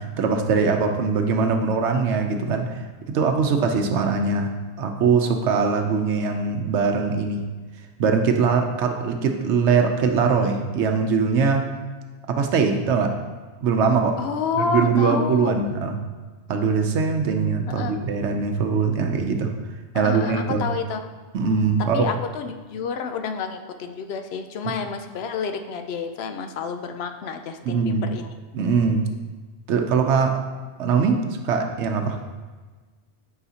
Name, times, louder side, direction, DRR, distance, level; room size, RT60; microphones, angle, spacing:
voice 1, 0.0-2.8 3.1-4.5 4.8-7.4 8.0-11.7 12.3-13.1 13.6-14.2 14.7-16.0 16.5-19.5 19.9-20.6 21.3-22.1 27.7-28.0 28.5-29.0 29.7-30.3 30.8-32.2, right 5 dB, 80° right, 4 dB, 0.9 m, -21 dB
voice 2, 14.2-15.6 17.7-18.0 19.9-21.1 21.9-28.3, left 5 dB, 70° left, 7 dB, 0.8 m, -29 dB
8.0 x 4.9 x 2.8 m, 1.4 s
omnidirectional pair, 1.2 m